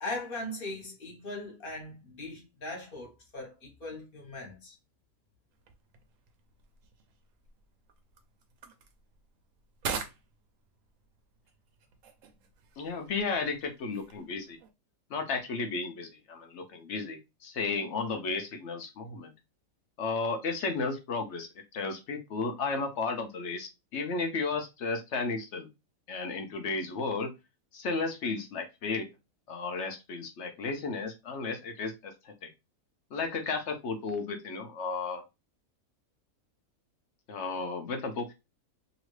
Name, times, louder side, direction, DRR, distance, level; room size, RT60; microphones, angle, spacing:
voice 1, 0.0-4.7, left 2 dB, 35° left, 1.2 m, -39 dB
sound 1, 5.5-14.7, right 6 dB, 65° right, 0.8 m, -45 dB
voice 2, 12.8-14.6 15.1-19.3 20.0-25.7 26.1-27.3 27.7-29.1 29.5-32.5 33.1-35.2 37.3-38.3, left 4 dB, 60° left, 0.7 m, -33 dB
2.9 x 2.6 x 3.1 m
omnidirectional pair, 1.8 m